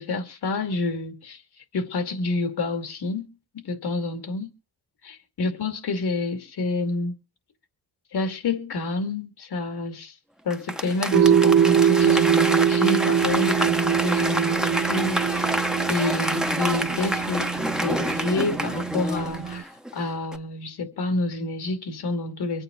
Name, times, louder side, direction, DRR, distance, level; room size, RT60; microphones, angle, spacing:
voice 1, 0.0-1.4 1.7-3.3 3.5-4.5 5.0-7.1 8.1-10.1 10.4-15.5 15.9-17.5 17.8-22.6, left 3 dB, 90° left, 2.5 m, -28 dB
Applause / Crowd, 10.5-19.9 20.3-20.4, equal, ahead, 0.7 m, -28 dB
sound 1, 11.1-19.6, right 8 dB, 45° right, 0.7 m, -23 dB
24.5 x 8.7 x 3.9 m
wide cardioid pair, 160°, 38 cm